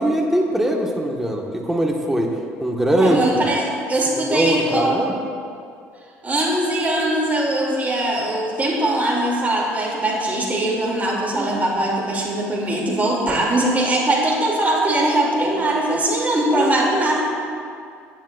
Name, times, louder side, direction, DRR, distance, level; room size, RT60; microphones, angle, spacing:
voice 1, 0.0-2.3 2.6-3.4 4.3-5.1 11.3-11.6 16.5-16.7, right 1 dB, 5° right, 0 dB, 1.6 m, -21 dB
voice 2, 3.0-5.1 6.2-17.3, right 1 dB, 20° right, -3 dB, 2.8 m, -21 dB
18.0 x 10.0 x 2.5 m, 2.4 s
figure-of-eight pair, 55°, 7 cm